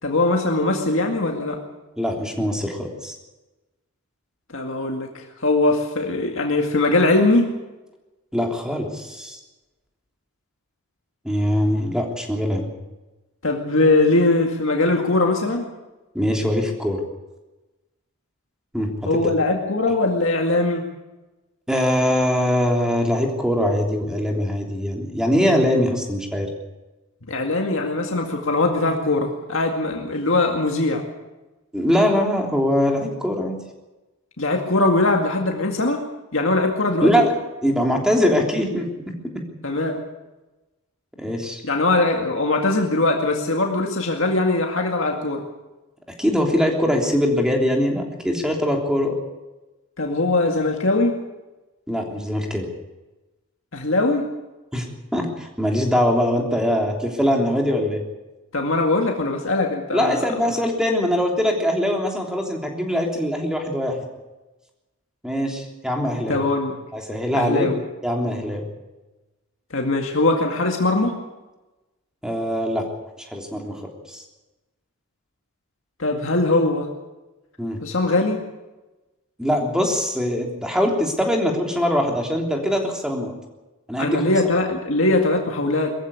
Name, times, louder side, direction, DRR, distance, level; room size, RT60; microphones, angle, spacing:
voice 1, 0.0-1.6 4.5-7.5 13.4-15.7 19.1-20.9 27.3-31.0 34.4-36.0 36.3-37.1 39.6-40.1 41.6-45.4 50.0-51.1 53.7-54.3 58.5-60.2 66.3-66.8 67.3-67.8 69.7-71.1 76.0-76.9 77.8-78.4 84.0-85.9, left 2 dB, 60° left, 2 dB, 2.1 m, -21 dB
voice 2, 2.0-3.1 8.3-9.4 11.2-12.7 16.1-17.0 18.7-19.3 21.7-26.5 31.7-33.6 37.0-37.3 37.6-39.4 41.2-41.6 46.2-49.1 51.9-52.7 54.7-54.9 55.1-58.0 59.9-64.0 65.2-66.4 66.9-67.7 68.0-68.6 72.2-72.8 73.2-73.7 74.1-74.2 77.6-77.8 79.4-83.3 83.9-84.2, equal, 5° right, 1 dB, 3.2 m, -22 dB
22.0 x 15.0 x 8.3 m, 1.1 s
head